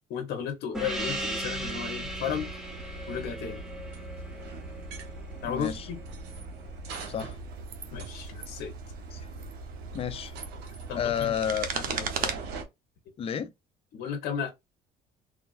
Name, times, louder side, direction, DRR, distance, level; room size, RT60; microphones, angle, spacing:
voice 1, 0.1-2.5 3.1-3.6 5.4-6.0 7.9-8.7 10.9-11.3 11.7-12.4 13.9-14.5, left 7 dB, 75° left, 0.7 m, -34 dB
Gong, 0.7-5.7, right 1 dB, 5° right, 0.7 m, -37 dB
sound 1, 0.7-12.6, right 3 dB, 90° right, 0.8 m, -41 dB
voice 2, 5.4-5.9 7.1-7.4 9.1-9.3 9.9-10.3 10.9-11.7 13.2-13.5, left 8 dB, 35° left, 0.4 m, -31 dB
sound 2, 7.1-7.2 7.7-7.9 8.3-8.5 9.3-9.5 10.1-12.3, right 7 dB, 60° right, 0.7 m, -35 dB
3.1 x 2.3 x 2.3 m
cardioid pair, 110°, 17 cm